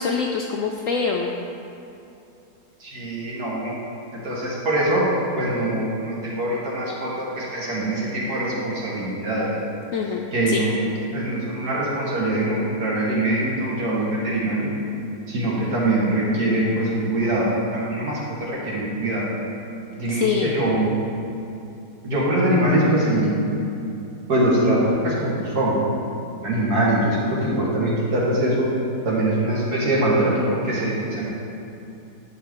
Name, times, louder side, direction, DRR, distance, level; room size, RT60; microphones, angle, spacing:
voice 1, 0.0-1.3 9.9-10.6 20.1-20.5, left 5 dB, 70° left, 1 dB, 0.7 m, -25 dB
voice 2, 2.8-3.7 4.2-5.1 5.4-9.5 10.3-14.7 15.3-17.5 17.7-19.2 20.0-20.9 22.0-23.3 24.3-26.0 26.4-28.7 29.0-31.2, right 1 dB, 60° right, -5 dB, 2.2 m, -23 dB
11.0 x 6.3 x 3.7 m, 2.8 s
omnidirectional pair, 1.9 m